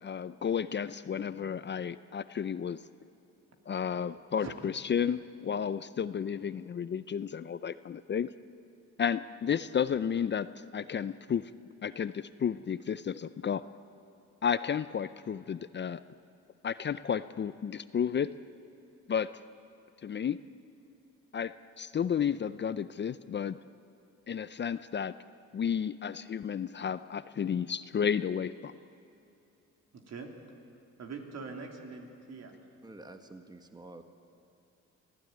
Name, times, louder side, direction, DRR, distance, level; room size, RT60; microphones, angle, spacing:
voice 1, 0.0-2.8 3.7-8.3 9.0-10.5 10.7-11.5 11.8-13.6 14.4-16.0 16.6-18.3 19.1-19.3 20.0-20.4 21.3-23.6 24.3-25.1 25.5-28.7, left 7 dB, 35° left, 14 dB, 0.6 m, -32 dB
voice 2, 29.9-30.3 31.0-32.5, right 4 dB, 60° right, 3 dB, 3.2 m, -43 dB
voice 3, 32.8-34.0, right 2 dB, 15° right, 7 dB, 1.5 m, -49 dB
24.5 x 16.0 x 9.4 m, 2.7 s
cardioid pair, 90°, 30 cm